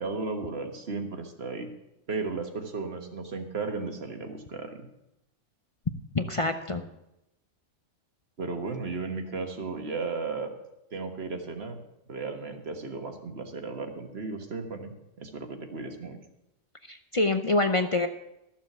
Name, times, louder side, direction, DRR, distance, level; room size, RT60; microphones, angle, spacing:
voice 1, 0.0-1.7 2.1-4.9 8.4-10.5 10.9-11.8 12.1-16.2, right 4 dB, 55° right, 4 dB, 1.7 m, -35 dB
voice 2, 6.1-6.8 16.9-18.1, left 2 dB, 40° left, 7 dB, 0.5 m, -26 dB
13.5 x 7.4 x 6.7 m, 0.89 s
omnidirectional pair, 1.3 m